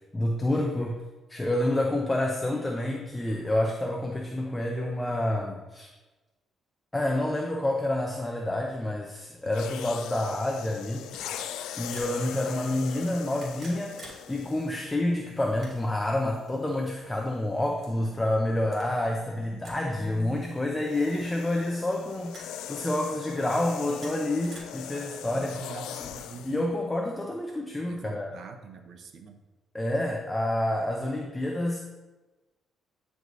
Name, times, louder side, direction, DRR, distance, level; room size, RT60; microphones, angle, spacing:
voice 1, 0.1-1.0 1.3-5.9 6.9-11.1 11.8-14.0 14.3-25.6 26.0-26.1 26.4-28.3 29.7-31.8, left 1 dB, 15° left, 1 dB, 0.7 m, -28 dB
sound 1, 9.5-15.0 15.8-16.0 20.0-26.7, left 10 dB, 90° left, 0.3 m, -41 dB
sound 2, 11.1-12.2 13.2-14.2 14.5-14.6 15.4-16.0 16.8-16.9 17.8-17.9 18.6-18.9 19.6-19.8 20.1-20.2 21.1-21.7 22.3-22.5 23.6-24.6, right 1 dB, 45° right, 2.2 m, -48 dB
voice 2, 25.4-26.6 27.8-29.4, right 5 dB, 65° right, 7 dB, 0.7 m, -44 dB
9.4 x 4.7 x 2.7 m, 1.2 s
cardioid pair, 90°, 0 cm